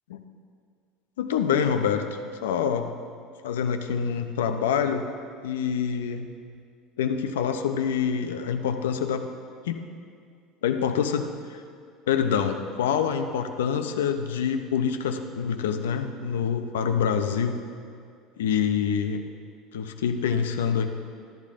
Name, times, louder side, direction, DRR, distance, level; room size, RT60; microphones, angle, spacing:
voice 1, 1.2-2.9 3.4-5.1 5.4-6.3 7.0-9.3 9.6-9.8 10.6-11.6 12.1-17.6 18.4-19.2 19.7-20.9, left 7 dB, 80° left, 7 dB, 0.7 m, -26 dB
13.5 x 11.5 x 3.7 m, 2.2 s
hypercardioid pair, 75°, 0 cm